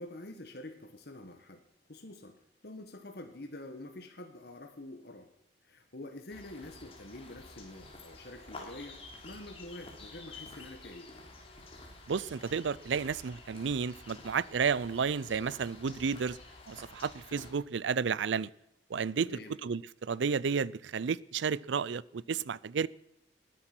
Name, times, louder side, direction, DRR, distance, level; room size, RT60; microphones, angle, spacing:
voice 1, 0.0-1.6 1.9-2.3 2.6-5.3 5.6-9.0 9.2-11.1 19.2-19.5, left 1 dB, 55° left, 1.5 m, -46 dB
sound 1, 6.3-17.5, left 2 dB, 30° left, 3.3 m, -50 dB
voice 2, 12.1-16.4 16.7-18.5 18.9-19.3 19.6-22.9, right 6 dB, 70° right, 0.4 m, -32 dB
20.0 x 10.0 x 6.1 m
head